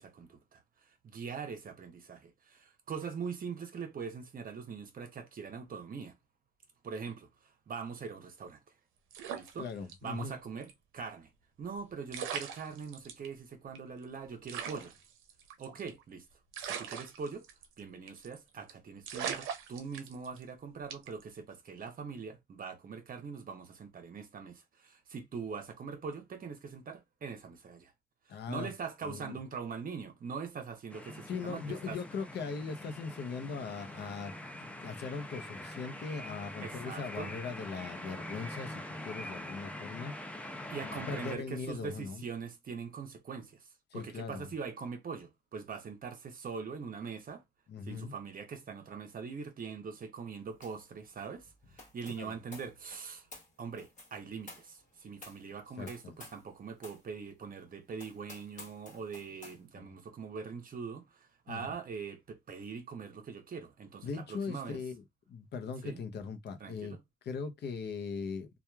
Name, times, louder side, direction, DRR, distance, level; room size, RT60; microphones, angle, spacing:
voice 1, 0.0-6.2 6.8-8.6 9.3-9.7 10.0-11.3 11.6-14.9 15.6-16.2 16.6-17.5 17.8-27.9 28.3-32.0 36.6-37.3 40.7-47.4 47.8-53.3 53.6-64.8 65.8-66.0 66.6-67.0, right 5 dB, 45° right, 0.8 m, -42 dB
sound 1, 9.1-10.3 10.6-10.7 11.8-11.9 12.1-13.3 13.8-13.9 14.0-14.1 14.5-16.0 16.5-17.8 18.1-18.4 18.7-18.8 19.1-20.4 20.9-21.2, right 8 dB, 90° right, 0.6 m, -40 dB
voice 2, 9.6-10.4 28.3-28.7 29.0-29.4 31.3-34.3 34.6-42.3 43.9-44.5 47.7-48.1 52.2-52.3 55.8-56.2 59.8-59.9 61.5-61.7 64.0-65.0 65.3-67.0 67.2-68.5, left 5 dB, 60° left, 0.6 m, -40 dB
sound 2, 30.9-41.4, left 1 dB, 5° left, 0.5 m, -44 dB
sound 3, 50.6-50.9 51.1-56.5 56.8-57.1 57.5-57.6 58.0-59.6, left 2 dB, 40° left, 1.3 m, -53 dB
2.9 x 2.3 x 2.2 m
cardioid pair, 90°, 20 cm